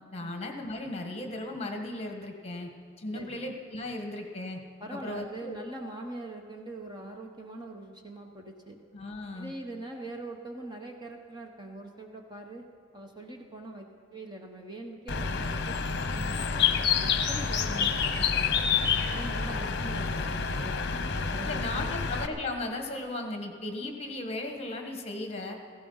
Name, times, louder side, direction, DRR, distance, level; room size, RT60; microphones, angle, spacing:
voice 1, 0.1-2.7 3.0-4.6 4.9-5.6 8.9-9.5 17.6-17.9 19.4-19.6 21.4-25.6, left 2 dB, 30° left, 3 dB, 1.5 m, -36 dB
voice 2, 3.1-3.4 4.8-8.8 9.3-12.6 12.9-18.7 19.1-20.8 21.3-22.0, right 2 dB, 20° right, 2 dB, 1.1 m, -43 dB
Bird, 15.1-22.3, left 6 dB, 55° left, 0.9 m, -28 dB
16.0 x 15.5 x 5.6 m, 2.2 s
head